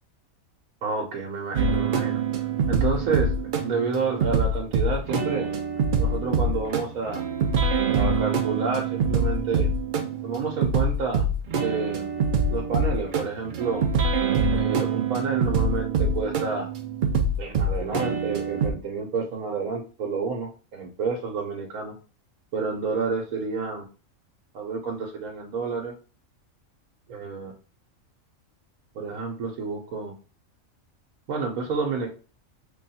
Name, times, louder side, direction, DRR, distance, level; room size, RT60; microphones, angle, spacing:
voice 1, 0.8-2.2 2.7-3.3 3.6-5.5 6.0-7.2 7.9-9.7 10.2-11.2 11.6-12.1 12.5-13.9 14.5-16.7 17.4-21.9 22.5-23.8 24.5-25.9 27.1-27.5 28.9-30.1 31.3-32.1, right 4 dB, 85° right, 0 dB, 1.1 m, -29 dB
sound 1, 1.5-18.7, right 3 dB, 70° right, 0.4 m, -25 dB
3.3 x 2.3 x 4.0 m, 0.36 s
omnidirectional pair, 1.4 m